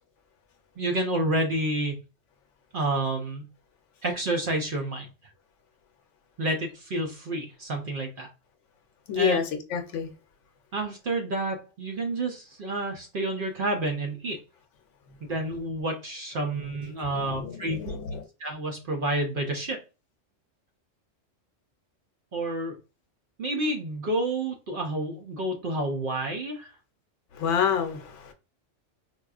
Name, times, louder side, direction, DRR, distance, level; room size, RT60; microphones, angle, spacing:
voice 1, 0.8-2.0 2.7-3.5 4.0-5.1 6.4-8.3 9.2-9.4 10.7-14.4 15.3-18.0 18.4-19.8 22.3-22.8 23.4-26.7, right 2 dB, 55° right, 0.6 m, -29 dB
voice 2, 9.1-10.1 17.1-18.2 27.4-28.3, left 7 dB, 75° left, 0.9 m, -28 dB
4.2 x 2.3 x 2.3 m
omnidirectional pair, 1.3 m